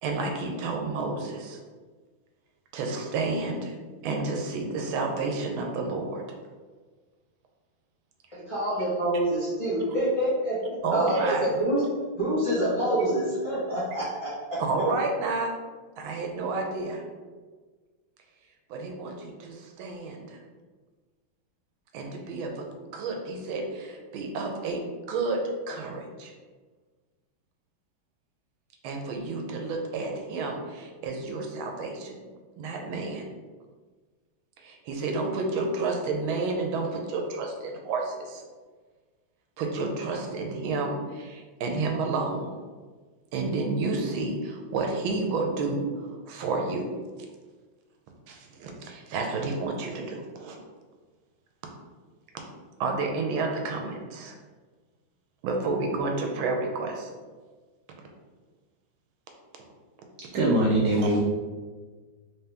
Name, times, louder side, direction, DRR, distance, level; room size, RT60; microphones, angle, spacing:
voice 1, 0.0-1.6 2.7-3.7 4.0-6.2 10.8-11.5 14.6-15.6 16.0-17.0 18.7-20.4 21.9-22.7 22.9-26.3 28.8-32.2 32.6-33.3 34.6-38.4 39.6-42.5 43.3-46.9 48.3-50.6 52.8-54.3 55.4-57.1 61.0-61.1, right 3 dB, 90° right, 2 dB, 1.4 m, -30 dB
voice 2, 8.3-11.8 12.1-14.9, right 1 dB, 20° left, -11 dB, 0.9 m, -27 dB
voice 3, 60.3-61.2, right 1 dB, 70° right, -5 dB, 1.0 m, -22 dB
3.6 x 2.8 x 3.4 m, 1.4 s
omnidirectional pair, 2.2 m